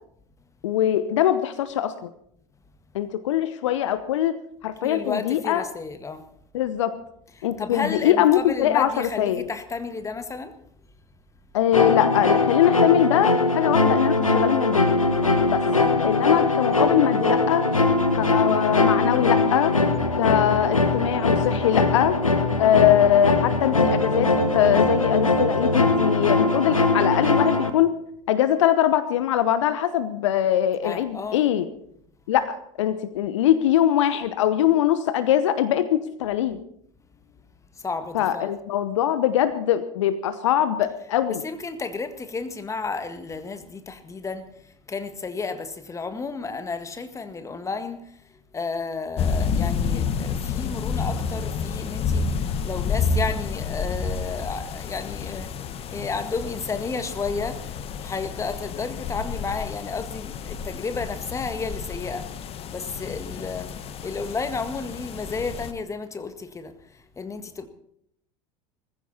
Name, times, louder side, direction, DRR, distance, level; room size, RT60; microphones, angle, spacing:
voice 1, 0.6-2.1 2.9-4.4 4.6-5.6 6.5-6.9 7.4-9.5 11.5-14.8 15.5-15.7 16.0-17.7 18.1-19.8 20.2-22.2 22.6-27.9 28.3-31.7 32.3-36.6 38.1-41.4, left 11 dB, 65° left, 1.0 m, -22 dB
voice 2, 4.8-6.2 7.4-10.5 30.8-31.4 37.8-38.5 41.4-44.5 44.9-48.0 48.5-55.5 55.9-62.3 62.7-63.7 64.0-66.7 67.2-67.7, left 4 dB, 20° left, 1.8 m, -32 dB
sound 1, 11.7-27.7, left 3 dB, 85° left, 1.4 m, -21 dB
sound 2, 49.2-65.7, left 5 dB, 35° left, 1.4 m, -30 dB
20.0 x 15.0 x 4.2 m
figure-of-eight pair, 75°, 17 cm